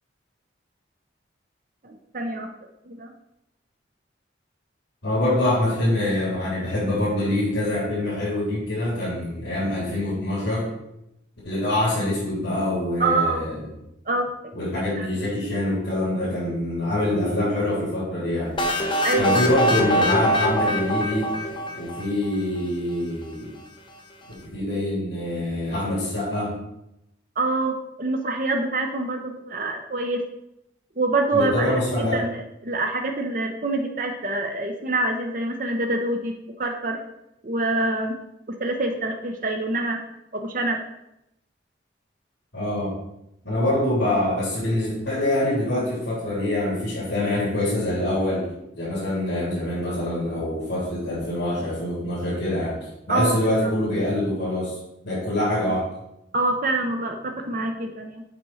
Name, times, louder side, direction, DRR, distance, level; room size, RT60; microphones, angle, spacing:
voice 1, 1.8-2.5 2.9-3.1 13.0-13.4 14.1-14.3 15.0-15.1 19.0-19.5 27.4-30.2 31.0-37.0 37.4-38.2 38.5-40.0 40.3-40.8 53.1-53.7 56.3-58.2, right 2 dB, 45° right, 3 dB, 0.7 m, -26 dB
voice 2, 5.0-10.7 11.4-13.6 14.5-18.5 19.2-21.3 21.7-23.5 24.3-26.7 31.3-32.2 42.5-42.9 43.4-48.5 48.7-52.8 53.1-54.8 55.0-55.9, left 1 dB, 70° left, -8 dB, 3.2 m, -25 dB
sound 1, 18.6-22.4, equal, 25° left, 0.9 m, -23 dB
7.6 x 4.3 x 6.3 m, 0.85 s
head